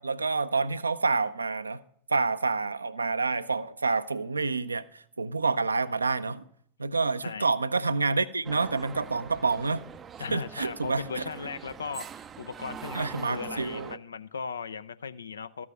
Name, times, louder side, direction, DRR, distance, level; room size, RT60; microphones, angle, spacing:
voice 1, 0.0-1.8 2.1-6.4 6.8-9.8 10.3-11.0 12.9-14.0, right 4 dB, 80° right, 0.5 m, -28 dB
sound 1, 8.4-14.0, right 7 dB, 25° right, 0.4 m, -43 dB
voice 2, 10.2-15.7, left 5 dB, 70° left, 0.5 m, -37 dB
13.5 x 6.2 x 5.6 m
figure-of-eight pair, 90°, 0 cm